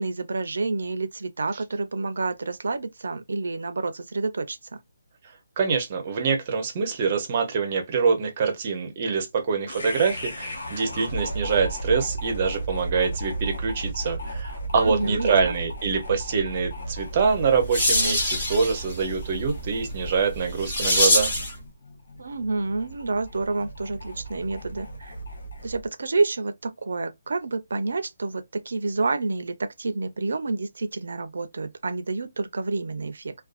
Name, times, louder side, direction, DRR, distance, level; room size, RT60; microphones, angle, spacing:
voice 1, 0.0-4.8 14.8-15.5 22.2-25.1 25.6-33.3, right 3 dB, 70° right, 0.5 m, -29 dB
voice 2, 5.6-21.3, right 5 dB, 25° right, 0.6 m, -25 dB
sound 1, 9.7-25.9, right 1 dB, 55° left, 0.8 m, -35 dB
sound 2, 17.2-21.6, left 1 dB, 20° left, 0.9 m, -25 dB
2.5 x 2.2 x 2.4 m
hypercardioid pair, 175°, 0 cm